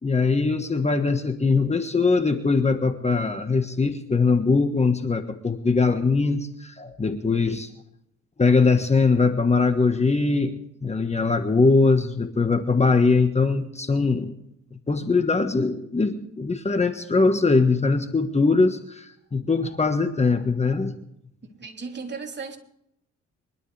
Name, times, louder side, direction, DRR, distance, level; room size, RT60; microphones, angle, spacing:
voice 1, 0.0-7.7 8.4-14.3 14.9-20.9, left 4 dB, 20° left, 1.4 m, -21 dB
voice 2, 21.4-22.6, right 5 dB, 35° right, 3.3 m, -36 dB
24.0 x 12.5 x 3.4 m
cardioid pair, 90°, 30 cm